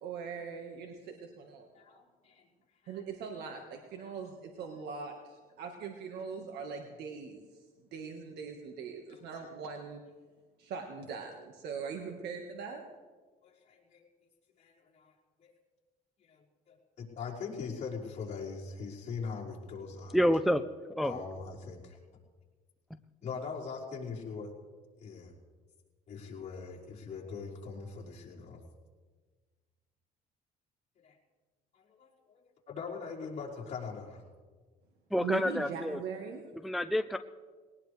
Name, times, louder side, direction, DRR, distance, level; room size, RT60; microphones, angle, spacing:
voice 1, 0.0-1.7 2.9-7.7 7.9-10.0 10.6-12.8 35.2-36.5, right 5 dB, 75° right, 3 dB, 1.7 m, -41 dB
voice 2, 1.7-2.4 2.8-3.0 9.1-9.2 13.4-14.1 14.6-15.1 15.4-15.5 16.3-20.3 21.0-22.0 23.2-24.5 25.0-25.3 26.1-28.6 31.0-31.2 31.7-34.2, left 5 dB, 45° left, -5 dB, 5.0 m, -42 dB
voice 3, 20.1-20.6 21.0-21.2 35.1-36.0 36.6-37.2, equal, ahead, 9 dB, 0.5 m, -28 dB
20.5 x 19.0 x 3.4 m, 1.4 s
cardioid pair, 110°, 17 cm